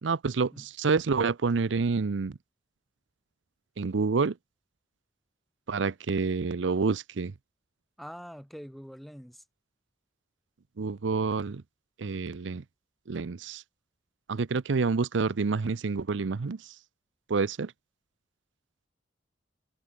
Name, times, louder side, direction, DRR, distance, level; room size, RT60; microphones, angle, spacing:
voice 1, 0.0-2.4 3.8-4.3 5.7-7.3 10.8-11.6 12.0-12.6 13.1-13.6 14.3-16.7 17.3-17.7, right 4 dB, 75° right, 0.6 m, -28 dB
voice 2, 8.0-9.4, equal, ahead, 6.3 m, -44 dB
head